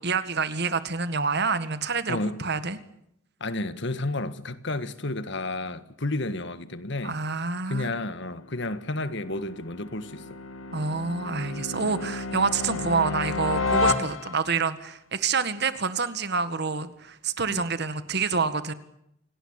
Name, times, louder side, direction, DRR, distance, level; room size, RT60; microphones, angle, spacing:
voice 1, 0.0-2.8 7.0-7.9 10.7-18.7, right 4 dB, 55° right, 1.9 m, -27 dB
voice 2, 3.4-7.1 7.7-10.4 11.8-12.0 17.5-17.6, left 2 dB, 65° left, 1.7 m, -31 dB
sound 1, 8.3-14.7, left 3 dB, 85° left, 2.4 m, -31 dB
28.0 x 18.5 x 8.9 m
head